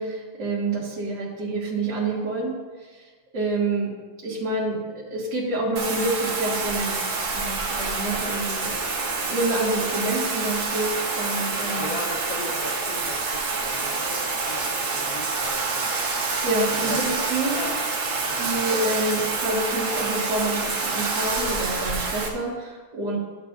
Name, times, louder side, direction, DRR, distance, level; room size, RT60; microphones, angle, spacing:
voice 1, 0.0-2.5 2.9-3.0 3.3-3.9 4.2-4.8 5.1-8.7 9.3-11.9 16.4-17.6 18.3-23.2, right 2 dB, 55° right, -7 dB, 2.6 m, -27 dB
Bathtub (filling or washing), 5.8-22.3, right 3 dB, 75° right, 2.1 m, -27 dB
voice 2, 11.7-16.4 16.7-17.2 17.5-17.7 18.2-18.4, left 2 dB, 50° left, -3 dB, 1.4 m, -37 dB
14.0 x 7.7 x 2.6 m, 1.4 s
omnidirectional pair, 2.2 m